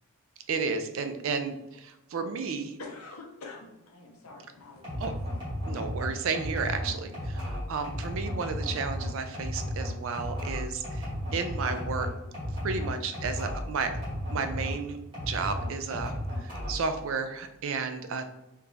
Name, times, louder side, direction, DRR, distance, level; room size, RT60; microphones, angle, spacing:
voice 1, 0.5-2.8 5.0-5.1 5.7-12.1 12.6-13.9 14.3-15.0 15.3-16.1 16.4-18.3, right 5 dB, 60° right, 8 dB, 0.3 m, -32 dB
voice 2, 2.8-5.0, left 3 dB, 75° left, 1 dB, 0.7 m, -45 dB
sound 1, 4.8-14.8 15.1-16.9, left 1 dB, 20° right, 1.3 m, -34 dB
3.6 x 2.8 x 2.4 m, 0.93 s
head